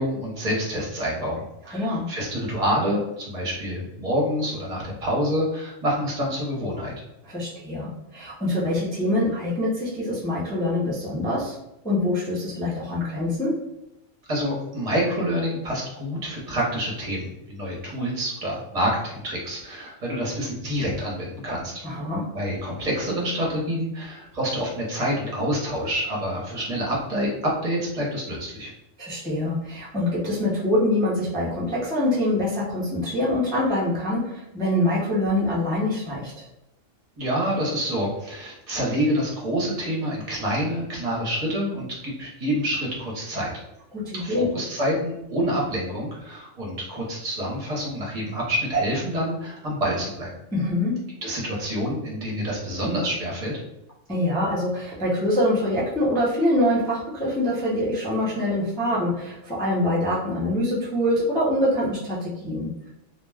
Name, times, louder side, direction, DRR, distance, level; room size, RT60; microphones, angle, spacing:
voice 1, 0.0-7.1 14.3-21.7 22.3-28.7 37.2-43.5 44.1-50.3 51.2-53.5, equal, 35° right, -3 dB, 0.8 m, -27 dB
voice 2, 1.7-2.1 7.2-11.5 11.8-13.5 21.8-22.2 29.0-36.4 43.9-44.5 50.5-50.9 54.1-62.9, left 1 dB, 5° left, -7 dB, 0.4 m, -24 dB
2.3 x 2.2 x 3.3 m, 0.87 s
omnidirectional pair, 1.3 m